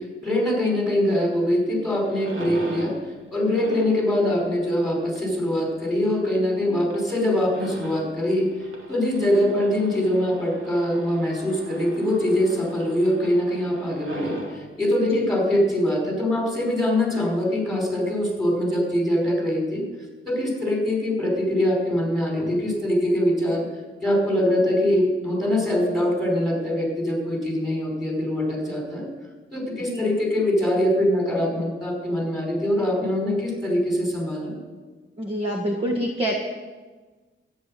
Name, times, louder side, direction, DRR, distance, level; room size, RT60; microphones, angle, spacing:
voice 1, 0.0-2.9 3.3-19.8 20.3-23.6 24.0-29.1 29.5-34.5, left 1 dB, ahead, -1 dB, 5.5 m, -23 dB
sound 1, 1.2-17.0, right 2 dB, 80° right, 2.5 m, -42 dB
voice 2, 35.2-36.3, equal, 25° right, 0 dB, 1.6 m, -26 dB
13.5 x 9.9 x 7.6 m, 1.3 s
wide cardioid pair, 125°, 21 cm